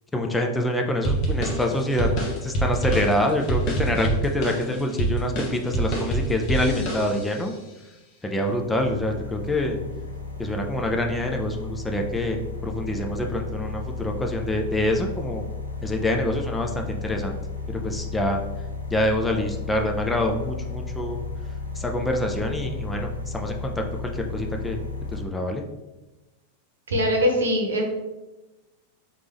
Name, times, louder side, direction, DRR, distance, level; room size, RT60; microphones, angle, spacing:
voice 1, 0.1-2.1 2.4-7.5 8.2-9.8 10.4-15.4 15.8-17.4 17.8-18.4 18.9-21.2 21.8-23.1 23.3-23.7 24.2-24.8 25.1-25.6, left 1 dB, 10° left, 2 dB, 0.4 m, -26 dB
sound 1, 1.0-7.5, right 2 dB, 40° left, 1.0 m, -26 dB
sound 2, 8.3-25.2, left 3 dB, 85° left, 0.7 m, -34 dB
voice 2, 26.9-27.8, equal, 70° right, 1 dB, 1.0 m, -22 dB
4.0 x 3.3 x 3.4 m, 1.0 s
figure-of-eight pair, 90°, 0 cm